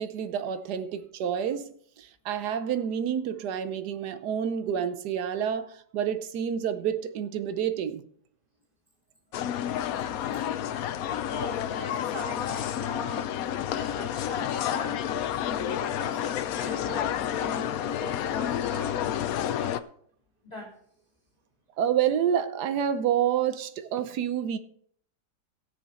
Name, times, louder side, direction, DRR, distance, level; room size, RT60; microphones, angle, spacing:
voice 1, 0.0-8.1 21.8-24.6, right 9 dB, 70° right, 1.3 m, -28 dB
sound 1, 9.3-19.8, left 10 dB, 65° left, 0.9 m, -30 dB
voice 2, 11.3-13.2 13.8-19.0 19.6-19.8 20.4-20.7, equal, 20° left, 2.7 m, -41 dB
17.0 x 6.6 x 4.3 m
omnidirectional pair, 1.9 m